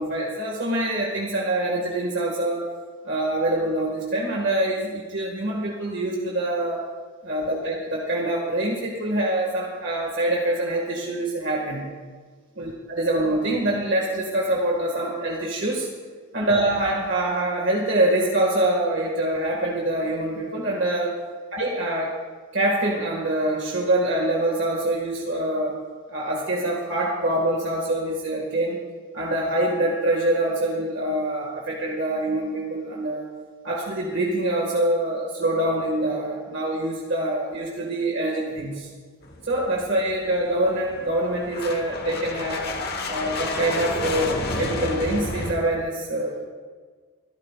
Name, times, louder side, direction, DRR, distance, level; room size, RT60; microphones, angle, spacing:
voice 1, 0.0-2.7 3.0-6.8 7.2-11.9 12.6-15.9 16.3-21.2 21.5-22.2 22.5-25.8 26.1-28.8 29.1-33.3 33.6-38.9 39.4-42.7 43.1-46.4, right 1 dB, 55° right, -2 dB, 1.9 m, -25 dB
sound 1, 39.2-45.5, left 2 dB, 45° left, 1.3 m, -31 dB
24.5 x 13.5 x 2.5 m, 1.5 s
head